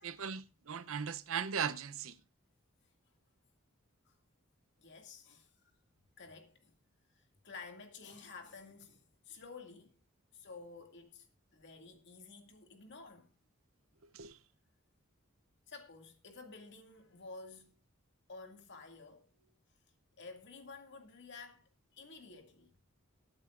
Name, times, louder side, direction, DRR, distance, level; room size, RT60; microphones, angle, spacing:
voice 1, 0.0-2.2 14.1-14.4, right 7 dB, 75° right, 0.7 m, -38 dB
voice 2, 4.8-5.7 6.2-6.8 7.2-10.0 10.3-11.3 11.5-13.3 15.7-17.8 18.3-19.5 20.2-22.8, left 4 dB, 55° left, 2.3 m, -52 dB
22.5 x 8.9 x 2.5 m
head